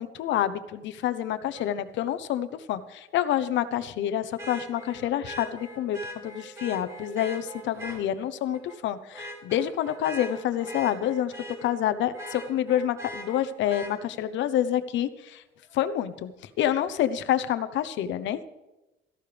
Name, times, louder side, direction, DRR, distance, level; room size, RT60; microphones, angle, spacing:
voice 1, 0.0-11.3 11.6-15.4 15.7-16.3 16.6-18.5, left 11 dB, 75° left, 12 dB, 0.9 m, -28 dB
Vehicle horn car horn honking, 1.5-1.7 4.4-8.0 8.5-8.8 9.1-11.8 12.1-13.9 15.7-15.8, equal, 15° right, 5.2 m, -40 dB
17.5 x 14.5 x 3.4 m, 1.0 s
cardioid pair, 160°, 19 cm